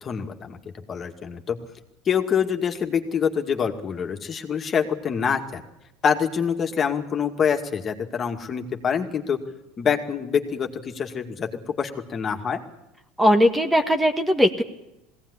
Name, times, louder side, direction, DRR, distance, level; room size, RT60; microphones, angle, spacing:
voice 1, 0.0-0.6 0.9-1.6 2.1-5.6 6.0-9.4 9.8-12.6, left 7 dB, 35° left, 4 dB, 2.3 m, -25 dB
voice 2, 13.2-14.6, equal, 5° right, 6 dB, 1.7 m, -19 dB
20.5 x 17.0 x 9.9 m, 0.92 s
hypercardioid pair, 85°, 0 cm